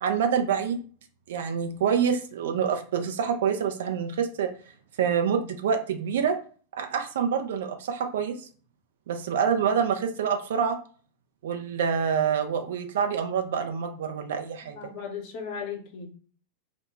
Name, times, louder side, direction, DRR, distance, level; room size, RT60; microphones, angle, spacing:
voice 1, 0.0-0.8 1.3-4.5 5.0-6.3 6.8-8.5 9.1-10.8 11.4-14.8, right 7 dB, 60° right, 5 dB, 0.4 m, -26 dB
voice 2, 14.8-16.1, left 6 dB, 45° left, 2 dB, 0.7 m, -36 dB
2.0 x 2.0 x 3.0 m, 0.42 s
figure-of-eight pair, 90°, 0 cm